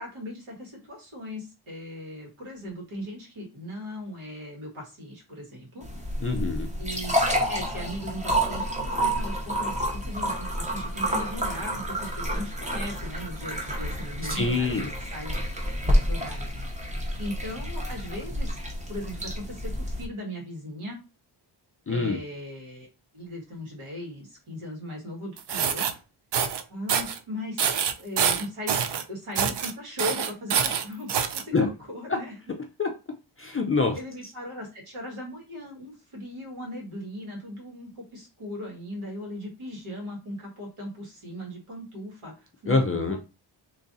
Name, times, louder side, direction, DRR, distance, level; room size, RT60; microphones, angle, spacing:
voice 1, 0.0-5.8 6.8-15.4 15.8-18.6 18.9-21.0 21.9-22.9 23.1-26.0 26.7-27.7 28.0-28.8 29.1-32.4 33.9-43.2, equal, 90° right, -2 dB, 1.8 m, -38 dB
sound 1, 5.8-20.1, equal, 15° right, 0.7 m, -29 dB
voice 2, 6.2-6.7 14.3-14.9 21.9-22.2 31.5-31.7 32.8-32.9 33.4-34.0 42.7-43.2, left 4 dB, 30° left, 2 dB, 0.4 m, -25 dB
sound 2, 25.4-25.9 26.3-26.6 26.9-27.2 27.6-29.0 29.3-29.7 30.0-31.4, right 7 dB, 60° right, 0.5 m, -25 dB
3.1 x 2.5 x 3.9 m, 0.29 s
wide cardioid pair, 155°, 48 cm